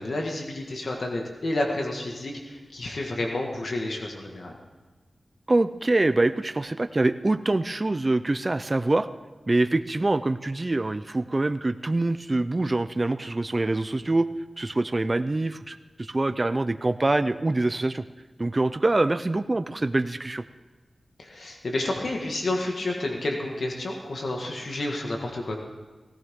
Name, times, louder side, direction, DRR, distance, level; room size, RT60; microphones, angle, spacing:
voice 1, 0.0-4.5 21.2-25.6, left 2 dB, 70° left, 1 dB, 1.8 m, -30 dB
voice 2, 5.5-9.1 9.5-14.3 14.6-18.0 18.4-20.4, right 2 dB, 35° right, 11 dB, 0.5 m, -25 dB
17.5 x 16.0 x 3.7 m, 1.3 s
wide cardioid pair, 70°, 0 cm